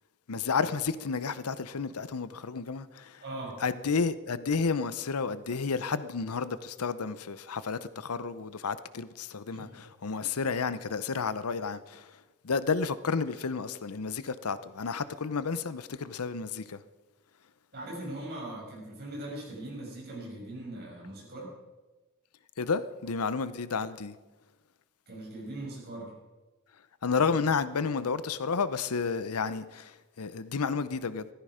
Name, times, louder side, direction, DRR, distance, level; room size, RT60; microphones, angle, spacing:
voice 1, 0.3-3.2 3.6-12.1 12.4-16.8 22.6-24.1 27.0-31.3, left 5 dB, 85° left, 0.7 m, -31 dB
voice 2, 3.2-3.6 9.5-9.8 17.7-21.5 25.1-26.1, right 1 dB, 45° right, 6.2 m, -40 dB
16.0 x 13.5 x 5.0 m
head